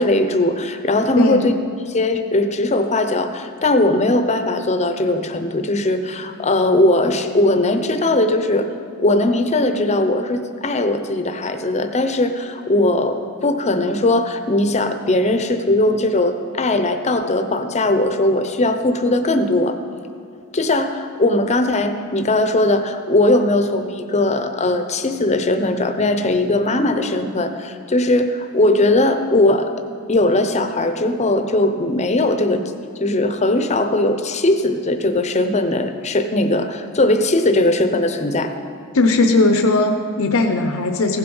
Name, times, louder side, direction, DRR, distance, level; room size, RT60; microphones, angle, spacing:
voice 1, 0.0-1.5 1.9-8.7 9.0-19.8 20.5-29.7 30.1-32.6 33.0-38.5, left 2 dB, 30° left, 8 dB, 0.7 m, -19 dB
voice 2, 38.9-41.2, left 2 dB, 65° left, 5 dB, 0.7 m, -17 dB
15.5 x 7.8 x 5.5 m, 2.5 s
head